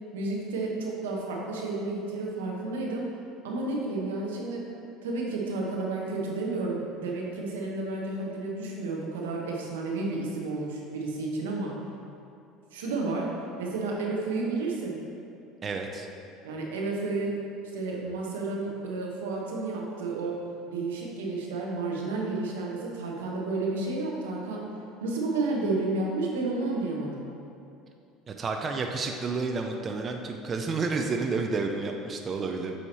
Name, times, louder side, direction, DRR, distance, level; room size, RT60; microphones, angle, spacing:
voice 1, 0.1-3.1 3.4-4.7 5.0-11.8 12.7-13.3 13.6-14.9 16.4-17.4 17.7-24.7 25.0-27.2, right 3 dB, 90° right, -2 dB, 0.9 m, -31 dB
voice 2, 15.6-16.1 28.3-32.7, right 4 dB, 35° right, 3 dB, 0.5 m, -30 dB
8.0 x 2.9 x 4.2 m, 2.6 s
hypercardioid pair, 85°, 0 cm